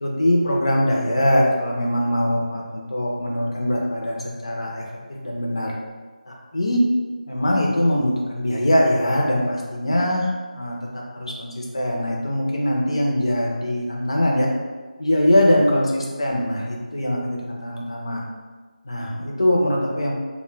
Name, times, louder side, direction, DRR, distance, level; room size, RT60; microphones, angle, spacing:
voice 1, 0.0-4.9 5.2-5.7 6.3-6.8 7.3-14.5 15.0-18.2 18.9-20.1, left 1 dB, 45° left, -2 dB, 0.5 m, -22 dB
2.1 x 2.1 x 3.2 m, 1.4 s
figure-of-eight pair, 175°, 4 cm